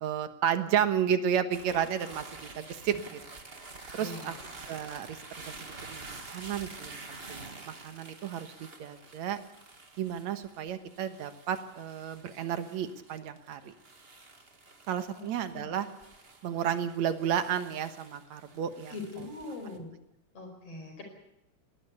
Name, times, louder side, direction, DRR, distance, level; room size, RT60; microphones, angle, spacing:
voice 1, 0.0-3.2 3.9-4.3 4.7-5.2 5.5-5.6 5.9-9.4 10.0-13.7 14.9-15.9 16.4-18.9, right 9 dB, 65° right, 10 dB, 2.4 m, -32 dB
sound 1, 1.5-19.8, right 3 dB, 25° right, 1.6 m, -49 dB
voice 2, 4.0-4.5 15.1-15.6 18.9-19.9 20.3-21.0, left 2 dB, 50° left, 4 dB, 6.2 m, -42 dB
20.0 x 19.0 x 8.3 m, 0.82 s
omnidirectional pair, 3.6 m